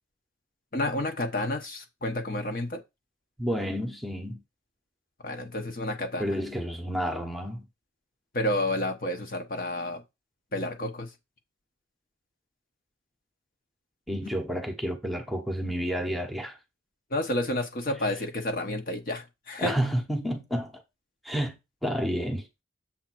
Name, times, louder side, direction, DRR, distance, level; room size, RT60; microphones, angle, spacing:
voice 1, 0.7-2.8 5.2-6.4 8.3-10.0 10.5-11.1 17.1-19.7, left 1 dB, 45° left, 1.0 m, -30 dB
voice 2, 3.4-4.4 6.2-7.7 14.1-16.6 19.6-20.8 21.2-21.6 21.8-22.5, equal, ahead, 1.0 m, -30 dB
7.3 x 3.6 x 6.1 m
head